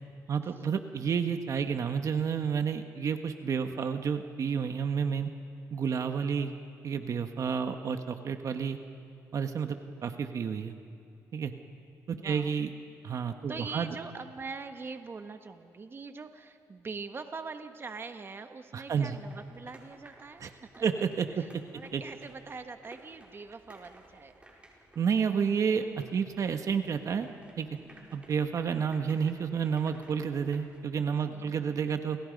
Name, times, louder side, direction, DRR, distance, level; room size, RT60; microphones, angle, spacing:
voice 1, 0.3-5.3 5.7-6.5 6.8-8.8 9.3-10.7 11.3-11.5 12.1-12.7 13.0-13.9 18.7-19.1 20.4-20.5 20.8-21.6 21.9-22.0 24.9-27.3 27.6-27.7 28.1-32.2, right 6 dB, 55° right, 7 dB, 1.5 m, -30 dB
voice 2, 12.1-12.6 13.5-21.0 21.3-24.3 27.9-28.3 31.3-31.8, right 4 dB, 35° right, 7 dB, 1.5 m, -43 dB
sound 1, 19.0-30.8, right 1 dB, 20° right, 5.7 m, -57 dB
29.5 x 29.5 x 5.4 m, 2.5 s
cardioid pair, 90°, 7 cm